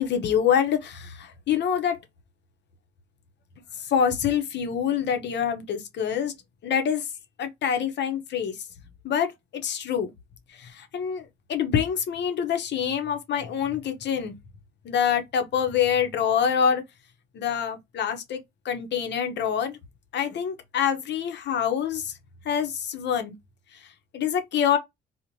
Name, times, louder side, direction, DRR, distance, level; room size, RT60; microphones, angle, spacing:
voice 1, 0.0-2.0 3.7-6.3 6.6-7.1 7.4-8.6 9.0-10.1 10.5-14.4 14.8-16.8 17.3-18.4 18.6-19.8 20.1-22.1 22.4-23.3 23.7-24.8, left 8 dB, 60° left, 0.7 m, -26 dB
2.9 x 2.1 x 2.6 m
cardioid pair, 90°, 20 cm